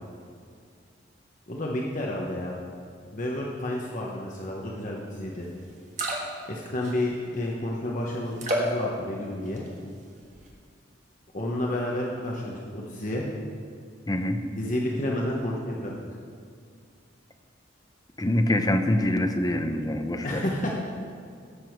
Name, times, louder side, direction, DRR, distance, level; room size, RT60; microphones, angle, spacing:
voice 1, 1.5-2.5 3.1-5.5 6.5-9.6 11.3-13.3 14.5-15.9 20.2-20.8, left 1 dB, 40° left, -2 dB, 1.1 m, -30 dB
sound 1, 5.3-5.4 5.7-6.5 6.8-7.3 8.4-8.8 9.4-9.8 10.2-10.5, right 1 dB, 40° right, 1.6 m, -30 dB
voice 2, 14.1-14.4 18.2-20.4, left 1 dB, 20° left, 6 dB, 0.7 m, -25 dB
17.0 x 7.0 x 4.6 m, 2.2 s
head